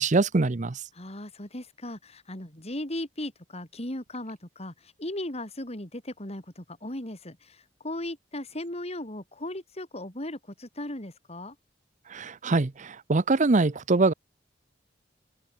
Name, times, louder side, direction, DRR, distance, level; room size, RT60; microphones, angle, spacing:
voice 1, 0.0-0.8 12.1-14.1, right 3 dB, 45° right, 0.7 m, -23 dB
voice 2, 0.9-11.5, left 1 dB, 35° left, 4.8 m, -37 dB
head